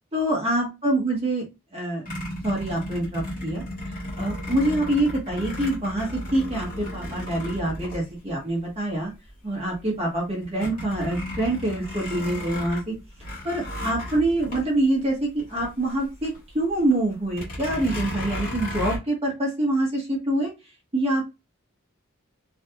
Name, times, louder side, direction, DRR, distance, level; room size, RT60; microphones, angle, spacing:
voice 1, 0.1-1.4 1.7-2.0 2.4-9.1 9.4-12.9 13.4-20.5 20.9-21.2, right 1 dB, 25° right, -2 dB, 1.0 m, -25 dB
sound 1, 2.1-8.7 9.3-9.4 9.7-16.4 16.7-16.8 17.3-19.0, left 1 dB, 40° left, 1.5 m, -34 dB
3.3 x 2.4 x 2.8 m, 0.25 s
head